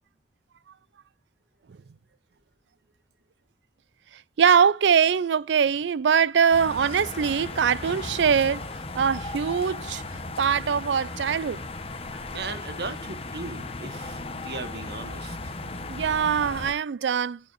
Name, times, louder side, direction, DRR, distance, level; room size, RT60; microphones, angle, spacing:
voice 1, 4.4-8.6 9.0-10.0 10.4-11.6 15.9-17.4, right 7 dB, 80° right, 0.4 m, -22 dB
sound 1, 6.5-16.7, left 2 dB, 35° left, 1.1 m, -36 dB
voice 2, 12.3-15.5, right 3 dB, 65° right, 1.6 m, -37 dB
15.5 x 7.4 x 2.6 m
head